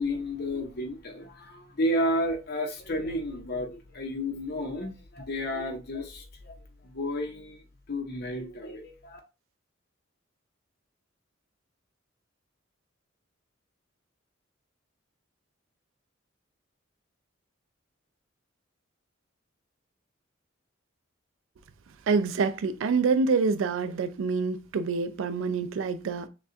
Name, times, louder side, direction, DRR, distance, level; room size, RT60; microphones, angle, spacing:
voice 1, 0.0-6.6 6.8-7.6 7.9-9.2, left 1 dB, 55° left, 0.9 m, -32 dB
voice 2, 22.1-26.3, right 4 dB, 75° right, 0.4 m, -26 dB
6.5 x 2.3 x 2.6 m
head